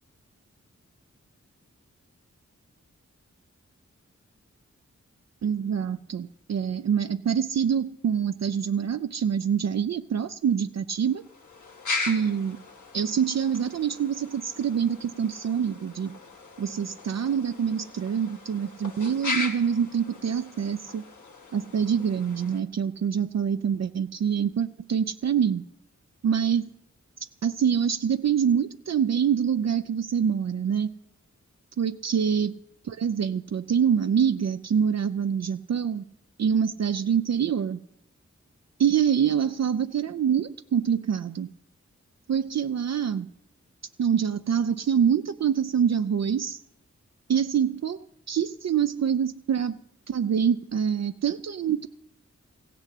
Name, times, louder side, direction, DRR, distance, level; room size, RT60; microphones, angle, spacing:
voice 1, 5.4-11.2 12.1-12.6 12.9-16.1 16.6-21.0 21.5-25.6 26.2-26.6 27.4-30.9 31.8-32.5 32.9-36.0 36.4-37.8 38.8-41.5 42.3-43.3 44.0-46.6 47.3-49.8 50.1-51.9, right 7 dB, 65° right, 10 dB, 0.5 m, -25 dB
sound 1, 11.1-22.6, left 3 dB, 80° left, 1.7 m, -38 dB
15.5 x 6.8 x 8.3 m, 0.80 s
wide cardioid pair, 55°, 29 cm